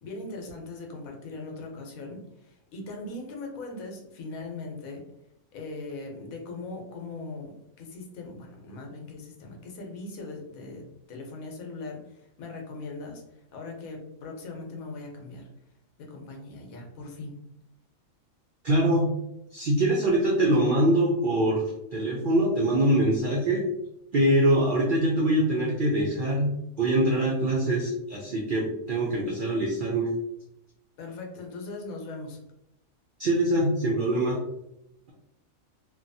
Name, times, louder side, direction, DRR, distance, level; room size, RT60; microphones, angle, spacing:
voice 1, 0.0-5.0 5.5-15.5 16.0-17.4 31.0-32.4, left 3 dB, 80° left, 1 dB, 1.1 m, -40 dB
voice 2, 18.6-19.1 19.5-23.7 24.1-30.1 33.2-34.4, right 1 dB, 85° right, -2 dB, 0.4 m, -24 dB
2.7 x 2.2 x 2.6 m, 0.83 s
omnidirectional pair, 1.5 m